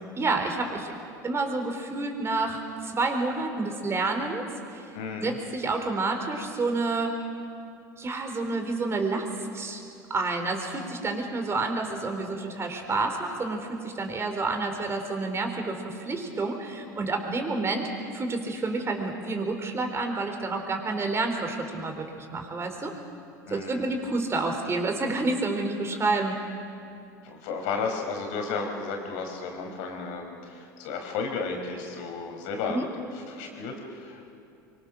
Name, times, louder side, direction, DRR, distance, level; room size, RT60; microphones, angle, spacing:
voice 1, 0.2-0.9 1.2-4.4 4.7-4.9 5.2-7.1 8.0-9.8 10.1-22.9 23.5-26.4 32.7-32.8, right 3 dB, 25° right, 4 dB, 4.0 m, -29 dB
voice 2, 4.9-5.4 23.5-23.9 27.2-32.9 33.3-34.3, left 4 dB, 65° left, 3 dB, 4.5 m, -33 dB
24.5 x 24.0 x 6.4 m, 2.6 s
hypercardioid pair, 80°, 10 cm